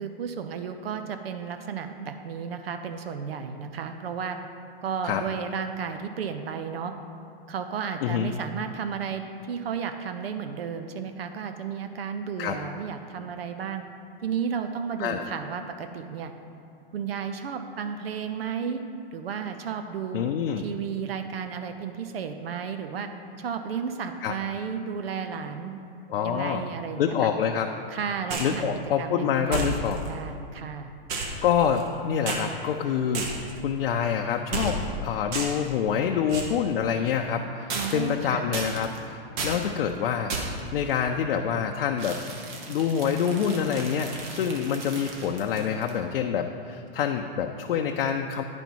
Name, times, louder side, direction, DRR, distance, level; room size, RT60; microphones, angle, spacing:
voice 1, 0.0-4.4 4.8-6.9 7.5-13.8 14.2-16.3 16.9-18.8 19.1-20.2 20.6-23.1 23.4-25.8 26.2-27.3 27.9-28.7 29.0-30.9 37.7-38.5, right 6 dB, 80° right, 7 dB, 0.7 m, -33 dB
voice 2, 8.0-8.3 12.4-12.6 15.0-15.2 20.1-20.6 24.2-24.3 26.1-26.6 27.0-27.7 28.4-30.0 31.4-33.3 33.6-40.3 40.7-42.2 42.7-48.4, left 7 dB, 70° left, 3 dB, 0.6 m, -26 dB
sound 1, 28.3-28.6 29.5-30.1 31.1-31.9 32.3-32.4 33.1-33.6 34.5-35.0 35.3-35.7 36.3-36.6 37.7-38.2 38.5-39.0 39.4-39.7 40.3-40.7 42.0-46.0, right 3 dB, 50° right, 1.6 m, -33 dB
9.9 x 5.2 x 4.6 m, 2.6 s
hypercardioid pair, 120°, 30 cm